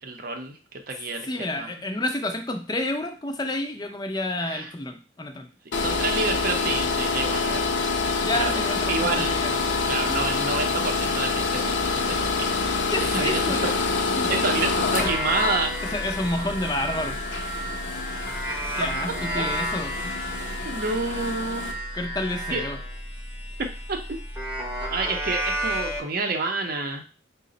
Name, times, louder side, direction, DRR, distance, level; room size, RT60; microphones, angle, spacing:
voice 1, 0.0-1.3 1.5-1.7 4.4-4.7 5.8-7.6 8.3-8.6 8.9-9.6 9.9-12.9 13.1-13.8 14.3-15.7 19.1-19.5 20.6-21.7 22.5-22.7 23.6-24.2 24.9-27.1, right 3 dB, 50° right, 4 dB, 0.6 m, -29 dB
voice 2, 1.2-5.5 8.2-10.2 12.1-12.2 12.9-13.6 14.1-14.3 15.0-15.1 15.9-17.2 18.7-20.2 21.9-22.8, left 2 dB, 20° left, 5 dB, 0.4 m, -30 dB
sound 1, 5.7-21.7, left 4 dB, 65° left, 0.6 m, -27 dB
sound 2, 15.0-26.0, equal, 10° right, 0.7 m, -31 dB
4.9 x 2.1 x 3.8 m, 0.35 s
head